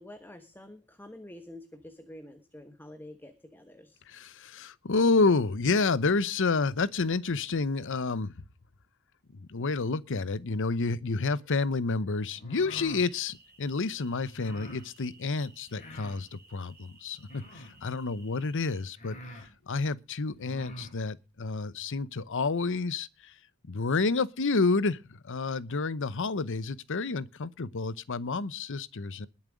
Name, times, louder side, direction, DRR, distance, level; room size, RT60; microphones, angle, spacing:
voice 1, 0.0-4.0, left 1 dB, 10° left, 1.3 m, -48 dB
voice 2, 4.1-8.3 9.4-19.2 19.7-23.3 23.7-25.0 25.2-29.3, left 3 dB, 60° left, 0.8 m, -29 dB
sound 1, 12.3-13.1 14.3-14.8 15.7-16.2 17.2-17.8 18.5-18.6 18.9-19.5 20.3-20.9, left 1 dB, 35° left, 3.9 m, -45 dB
sound 2, 12.9-18.8, right 3 dB, 10° right, 5.5 m, -58 dB
21.0 x 7.4 x 5.1 m
head